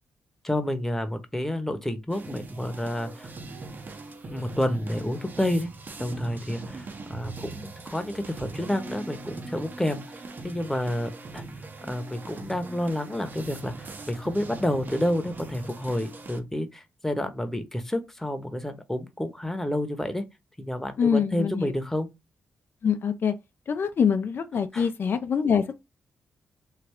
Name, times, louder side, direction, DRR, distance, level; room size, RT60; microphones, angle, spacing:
voice 1, 0.4-3.3 4.3-5.7 6.0-11.4 11.8-20.2 20.6-22.1 24.7-24.9, left 1 dB, 10° left, 0.9 m, -29 dB
sound 1, 2.1-16.4, right 3 dB, 45° right, 0.8 m, -41 dB
voice 2, 21.0-21.7 22.8-23.3 23.7-25.8, left 7 dB, 60° left, 0.5 m, -24 dB
3.2 x 2.3 x 3.5 m
supercardioid pair, 55°, 4 cm